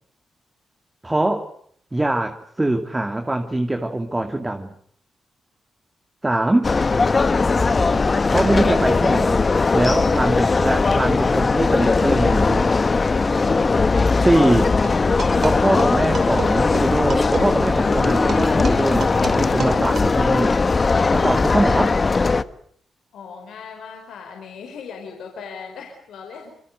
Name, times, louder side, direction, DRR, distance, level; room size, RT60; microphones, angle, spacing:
voice 1, 1.0-1.5 1.9-4.7 6.2-6.7 8.3-9.4 9.7-12.7 14.2-14.7 15.4-19.1 19.4-20.5 21.1-21.9, right 1 dB, 20° right, 6 dB, 2.5 m, -22 dB
sound 1, 6.6-22.4, left 4 dB, 40° left, 1.3 m, -19 dB
sound 2, 14.8-20.0, right 5 dB, 65° right, 5.3 m, -32 dB
voice 2, 23.1-26.5, left 6 dB, 85° left, 3 dB, 4.7 m, -38 dB
27.0 x 23.0 x 8.1 m, 0.62 s
cardioid pair, 60°, 0 cm